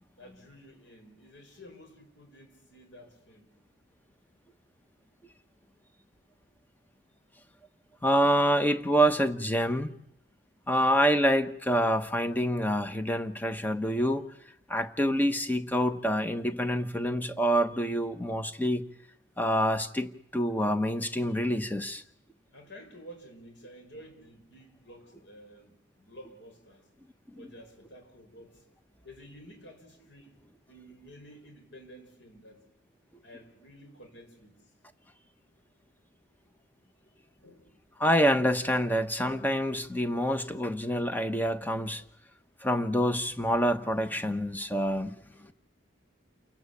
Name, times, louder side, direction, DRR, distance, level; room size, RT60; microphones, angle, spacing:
voice 1, 0.2-3.5 22.5-26.9 27.4-28.7 29.0-30.4 30.7-32.6 33.2-34.6 37.4-37.8 45.3-45.5, equal, 75° left, 5.9 m, -51 dB
voice 2, 8.0-10.0 10.7-14.2 14.7-18.9 19.4-22.0 38.0-42.0 42.6-45.5, equal, 10° left, 1.1 m, -27 dB
29.0 x 18.5 x 8.5 m
head